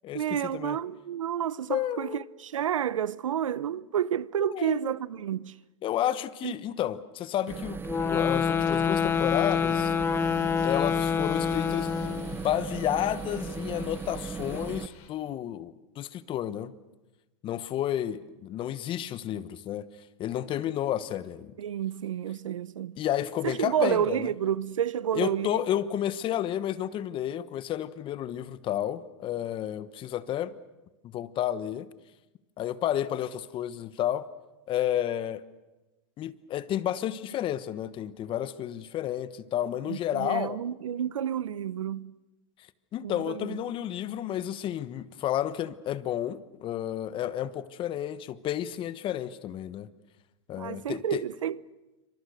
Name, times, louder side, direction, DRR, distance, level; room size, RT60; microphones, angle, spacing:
voice 1, 0.1-5.5 6.4-6.5 21.6-23.0 23.4-25.6 39.8-42.1 43.0-43.6 50.6-51.6, right 9 dB, 85° right, 0.8 m, -30 dB
voice 2, 1.7-2.2 4.4-4.9 5.8-7.8 8.1-9.9 10.6-11.9 12.3-16.7 17.4-19.9 20.2-21.5 23.0-24.3 25.1-30.6 31.0-31.9 32.6-34.3 34.7-35.4 36.2-40.6 42.9-49.9 50.5-51.2, left 11 dB, 30° left, 1.2 m, -31 dB
sound 1, 7.5-14.9, right 5 dB, 15° right, 0.8 m, -37 dB
sound 2, 7.8-12.4, left 7 dB, 15° left, 0.9 m, -27 dB
sound 3, 8.5-15.1, left 8 dB, 50° left, 4.7 m, -53 dB
27.5 x 25.5 x 6.5 m
hypercardioid pair, 120°, 16 cm